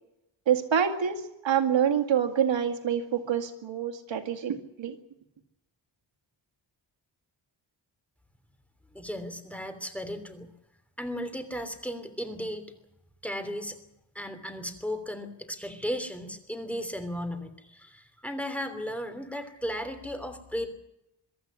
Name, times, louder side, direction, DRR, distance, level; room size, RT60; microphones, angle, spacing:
voice 1, 0.5-4.9, right 8 dB, 75° right, 5 dB, 2.2 m, -26 dB
voice 2, 8.9-10.5 11.0-12.7 13.2-13.8 14.1-20.7, equal, 5° left, 8 dB, 3.1 m, -35 dB
24.0 x 13.0 x 9.7 m, 0.87 s
wide cardioid pair, 115°, 46 cm